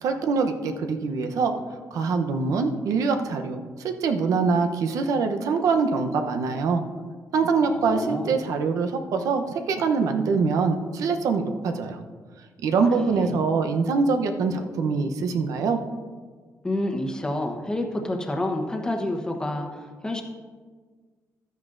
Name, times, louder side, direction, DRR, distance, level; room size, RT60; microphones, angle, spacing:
voice 1, 0.0-1.5 1.9-6.8 7.3-12.0 12.6-15.8, right 4 dB, 80° right, 5 dB, 0.8 m, -24 dB
voice 2, 7.6-8.4 12.9-13.3 16.6-20.2, left 1 dB, 15° left, 3 dB, 1.1 m, -29 dB
12.5 x 9.4 x 2.6 m, 1.5 s
cardioid pair, 135°, 6 cm